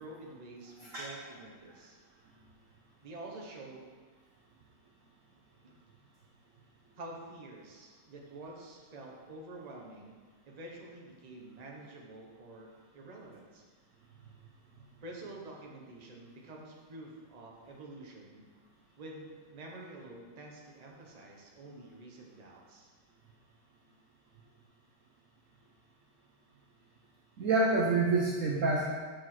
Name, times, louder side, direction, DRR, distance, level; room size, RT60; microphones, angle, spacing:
voice 1, 0.0-2.0 3.0-3.9 5.6-5.7 7.0-10.2 10.5-13.6 15.0-18.5 19.0-22.9, right 2 dB, 30° right, -1 dB, 0.8 m, -48 dB
voice 2, 27.4-28.9, right 3 dB, 60° right, -2 dB, 0.8 m, -27 dB
6.9 x 5.0 x 5.9 m, 1.5 s
omnidirectional pair, 2.3 m